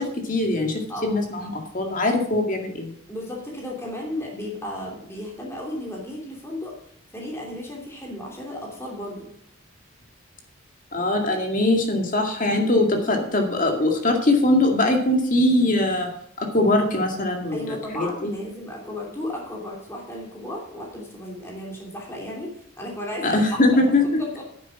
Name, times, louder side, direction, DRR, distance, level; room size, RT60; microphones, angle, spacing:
voice 1, 0.0-2.9 10.9-16.1 16.4-18.3 23.2-24.0, left 2 dB, 40° left, 3 dB, 2.1 m, -22 dB
voice 2, 0.9-1.3 3.1-6.8 7.1-9.3 12.7-12.9 17.5-23.8 24.2-24.4, left 1 dB, 10° left, -2 dB, 2.9 m, -34 dB
10.5 x 7.9 x 5.9 m, 0.69 s
head